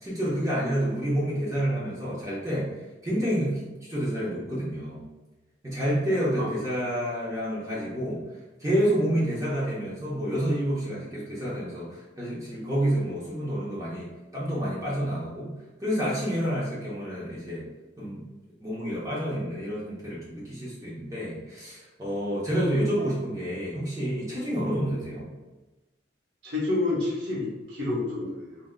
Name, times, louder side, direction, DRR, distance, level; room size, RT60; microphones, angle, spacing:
voice 1, 0.0-2.7 3.0-5.0 5.6-8.2 8.6-15.5 15.8-17.6 18.0-18.3 18.6-25.3, equal, 15° right, -7 dB, 0.8 m, -29 dB
voice 2, 26.4-28.6, left 2 dB, 65° right, -7 dB, 1.0 m, -29 dB
3.6 x 2.8 x 2.2 m, 1.1 s
head